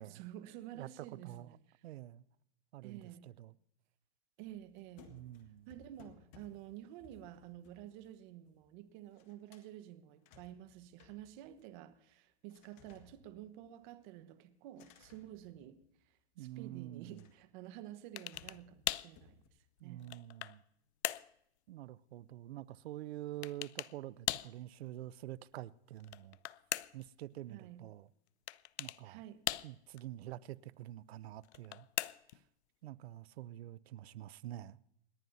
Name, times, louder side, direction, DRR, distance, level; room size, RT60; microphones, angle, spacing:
voice 1, 0.0-1.8 2.8-3.3 4.4-5.2 5.7-15.8 16.4-19.3 19.8-20.1 27.5-27.9 29.0-29.5, right 12 dB, 45° right, 1.2 m, -51 dB
voice 2, 0.7-1.6 1.8-2.2 2.7-3.5 5.1-5.7 16.4-17.2 19.8-20.6 21.7-26.4 26.9-28.1 28.8-29.2 29.6-31.9 32.8-34.8, right 14 dB, 70° right, 0.6 m, -47 dB
sound 1, 4.4-8.8 9.1-9.7 10.1-12.0 12.5-14.0 14.7-16.2 17.1-17.6 18.3-19.5, left 6 dB, 45° left, 1.8 m, -63 dB
sound 2, 18.2-18.6 18.9-19.1 19.8-20.6 21.0-21.3 23.4-23.9 24.3-24.6 26.0-27.1 28.5-29.0 29.5-30.0 31.4-32.4, left 14 dB, 80° left, 0.5 m, -39 dB
28.0 x 10.5 x 2.7 m
hypercardioid pair, 135°, 33 cm